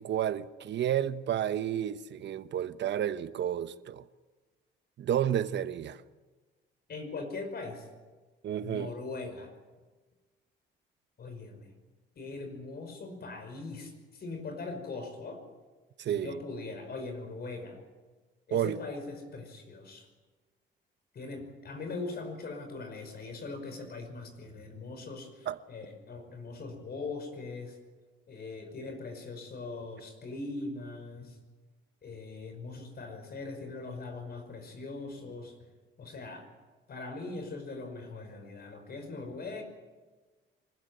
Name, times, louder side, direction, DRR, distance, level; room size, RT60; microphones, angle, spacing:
voice 1, 0.0-4.0 5.0-6.0 8.4-8.9 16.0-16.4 18.5-18.8 25.5-25.6, right 10 dB, 65° right, 1.0 m, -31 dB
voice 2, 6.9-7.9 8.6-9.5 11.2-11.7 12.2-15.4 16.1-17.8 18.5-20.1 21.1-27.8 28.3-31.4 32.0-35.6 36.0-36.5 36.9-39.6, left 3 dB, 55° left, 5.5 m, -41 dB
24.5 x 15.0 x 9.2 m
cardioid pair, 90°, 20 cm